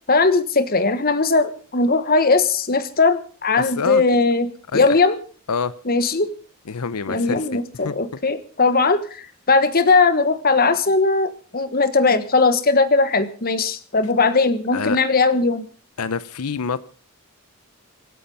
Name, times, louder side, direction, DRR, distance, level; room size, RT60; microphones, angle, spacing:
voice 1, 0.1-5.2 5.8-6.3 7.1-15.6, left 3 dB, 40° left, 12 dB, 1.4 m, -19 dB
voice 2, 3.6-4.0 4.7-5.0 5.5-5.7 6.7-7.9 14.7-15.0 16.0-16.8, left 5 dB, 90° left, 16 dB, 0.7 m, -26 dB
25.0 x 8.5 x 5.5 m, 0.41 s
head